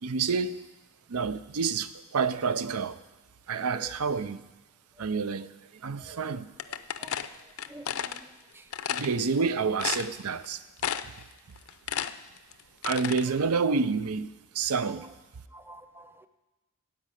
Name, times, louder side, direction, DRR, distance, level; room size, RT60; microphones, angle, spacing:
voice 1, 0.0-0.7 1.1-3.0 3.5-4.4 5.0-5.5 5.8-6.8 8.9-10.6 12.8-15.1, right 5 dB, 85° right, 0.6 m, -29 dB
sound 1, 6.6-8.2 8.7-9.1 9.5-9.6 9.8-10.5 10.8-11.2 11.6-13.2, left 9 dB, 70° left, 0.5 m, -32 dB
voice 2, 7.7-8.3 15.5-16.3, right 1 dB, 10° right, 0.6 m, -48 dB
16.0 x 5.4 x 9.0 m
head